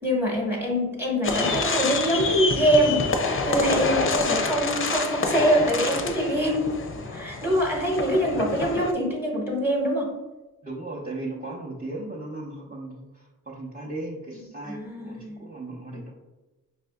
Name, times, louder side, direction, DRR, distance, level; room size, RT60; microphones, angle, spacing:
voice 1, 0.0-3.1 3.4-6.7 7.1-10.1 14.8-15.4, equal, 5° right, -2 dB, 1.1 m, -24 dB
sound 1, 1.2-8.9, left 3 dB, 40° left, 0.5 m, -27 dB
voice 2, 10.6-16.1, right 2 dB, 25° right, -6 dB, 0.8 m, -36 dB
5.3 x 2.5 x 2.2 m, 1.1 s
cardioid pair, 70°, 34 cm